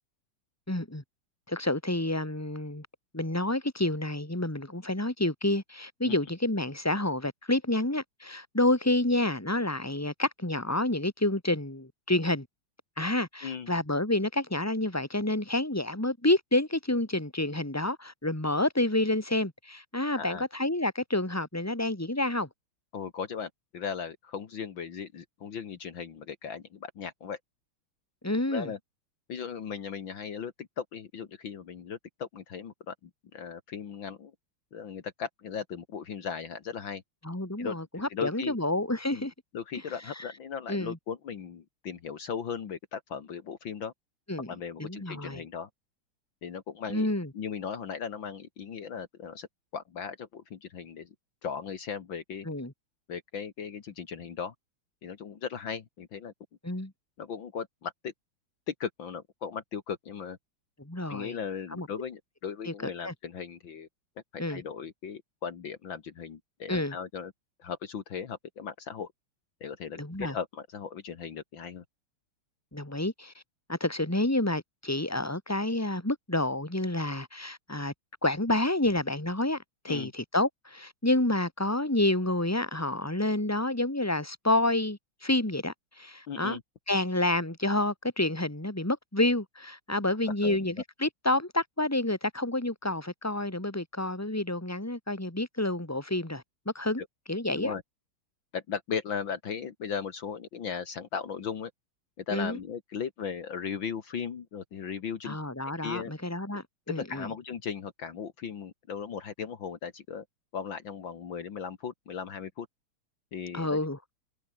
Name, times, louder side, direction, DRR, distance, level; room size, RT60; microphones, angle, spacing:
voice 1, 0.7-1.0 1.5-2.9 3.1-12.5 13.0-22.5 28.2-28.7 37.2-39.3 40.7-41.0 44.3-44.5 44.8-45.4 46.9-47.3 52.4-52.7 56.6-56.9 60.8-61.4 61.7-61.9 62.7-63.1 64.4-64.6 66.7-67.0 70.0-70.4 72.7-73.3 73.7-77.9 78.2-79.6 79.8-86.6 86.9-97.8 102.3-102.6 105.2-107.3 113.5-114.0, left 1 dB, 5° left, 3.5 m, -29 dB
voice 2, 20.1-20.4 22.9-27.4 28.5-28.8 29.3-34.3 34.7-37.0 37.6-37.8 38.1-38.6 39.1-39.3 39.5-43.9 44.5-45.7 46.4-47.1 47.3-49.5 49.7-51.1 51.4-52.5 53.1-54.5 55.0-56.3 57.2-58.1 58.7-60.4 61.1-63.9 64.3-67.3 67.6-69.1 69.6-71.8 79.9-80.1 86.3-86.6 90.4-90.7 97.5-97.8 98.5-101.7 102.3-105.4 105.8-106.1 106.9-110.2 110.5-112.7 113.3-113.8, left 6 dB, 60° left, 2.4 m, -37 dB
omnidirectional pair, 2.4 m